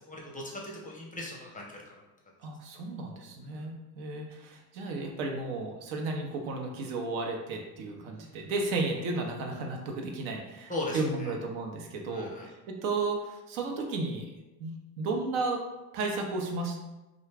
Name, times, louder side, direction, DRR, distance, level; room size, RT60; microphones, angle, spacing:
voice 1, 0.1-2.0 3.5-3.7 8.1-8.4 10.7-11.0 12.1-12.5, left 2 dB, 15° left, -2 dB, 0.5 m, -38 dB
voice 2, 2.4-14.3 14.6-15.6 15.9-16.8, right 3 dB, 75° right, 2 dB, 0.7 m, -33 dB
2.4 x 2.2 x 3.2 m, 1.1 s
supercardioid pair, 85°, 50 cm